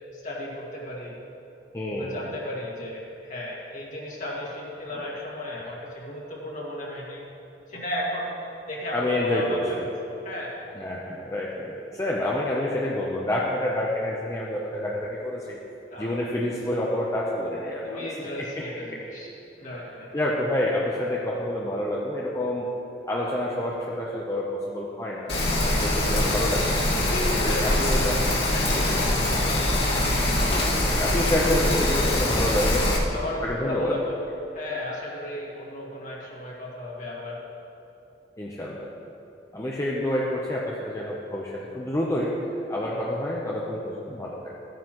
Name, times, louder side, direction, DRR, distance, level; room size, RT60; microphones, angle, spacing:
voice 1, 0.1-1.2 1.9-7.2 7.7-8.3 8.7-10.0 10.2-10.6 15.9-16.1 17.8-19.3 19.6-20.1 25.5-25.9 26.2-26.5 27.0-28.0 28.5-29.3 33.1-34.2 34.5-37.4 42.8-43.1, left 1 dB, 45° left, -4 dB, 2.1 m, -34 dB
voice 2, 1.7-2.2 8.9-9.9 10.8-15.6 16.0-18.1 18.4-18.6 18.9-19.0 20.1-22.7 23.0-25.4 25.8-26.9 27.4-28.4 28.7-29.0 30.4-32.9 33.4-33.9 38.4-38.9 39.5-42.4 42.7-44.5, left 1 dB, 15° left, -4 dB, 0.7 m, -28 dB
Rain, 25.3-33.0, left 1 dB, 70° left, 2.3 m, -23 dB
14.0 x 9.5 x 3.1 m, 3.0 s
head